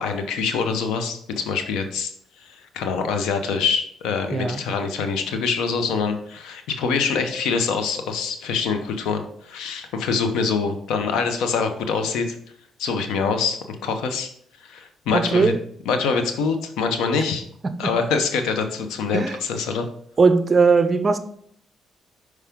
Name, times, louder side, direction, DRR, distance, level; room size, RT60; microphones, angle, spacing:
voice 1, 0.0-2.1 2.4-12.4 12.8-14.3 14.6-15.5 15.9-17.4 17.8-19.9, left 5 dB, 90° left, 7 dB, 0.8 m, -25 dB
voice 2, 15.1-15.6 17.6-17.9 19.1-19.4 20.2-21.2, right 4 dB, 35° right, 11 dB, 0.6 m, -19 dB
5.9 x 4.8 x 3.6 m, 0.65 s
cardioid pair, 90°, 0 cm